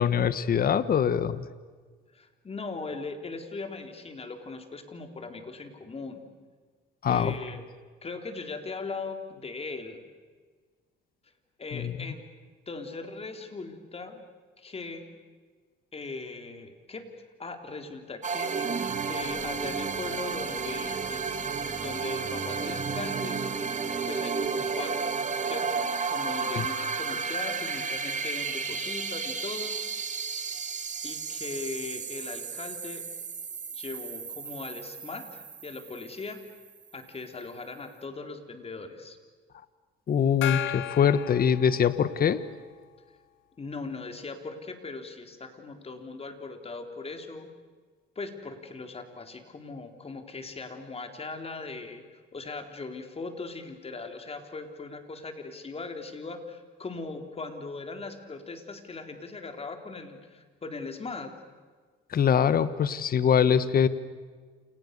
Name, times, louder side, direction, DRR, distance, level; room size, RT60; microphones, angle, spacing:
voice 1, 0.0-1.5 7.0-7.3 11.7-11.9 40.1-42.4 62.1-63.9, left 8 dB, 45° left, 14 dB, 1.4 m, -23 dB
voice 2, 2.1-6.2 7.1-7.6 8.0-10.0 11.6-12.2 12.7-14.2 14.6-15.1 15.9-17.1 17.4-18.8 19.1-21.4 21.8-23.4 24.1-25.1 25.4-29.8 31.0-33.0 33.7-36.4 36.9-39.2 43.6-47.5 48.2-61.3, left 3 dB, 30° left, 5 dB, 3.9 m, -39 dB
sound 1, 18.2-36.7, right 5 dB, 35° right, 2.7 m, -32 dB
Gong, 40.4-42.4, left 12 dB, 70° left, 0.9 m, -34 dB
29.0 x 29.0 x 6.9 m, 1.5 s
cardioid pair, 100°, 21 cm